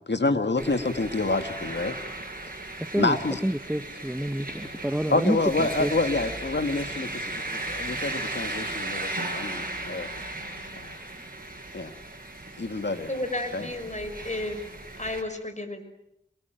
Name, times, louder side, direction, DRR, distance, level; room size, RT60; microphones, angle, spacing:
voice 1, 0.1-2.0 3.0-3.4 5.1-10.1 11.7-11.9 12.6-13.1 13.5-13.7, left 3 dB, 65° left, 7 dB, 2.0 m, -27 dB
sound 1, 0.6-15.2, right 2 dB, 50° right, 5.5 m, -36 dB
voice 2, 2.8-3.2 3.4-5.9, right 1 dB, 5° right, 9 dB, 1.0 m, -28 dB
sound 2, 4.5-11.0, left 2 dB, 80° left, 5.4 m, -50 dB
voice 3, 13.1-14.6 15.0-15.8, left 1 dB, 40° left, 8 dB, 5.6 m, -32 dB
27.5 x 23.5 x 9.1 m, 0.81 s
wide cardioid pair, 45°, 19 cm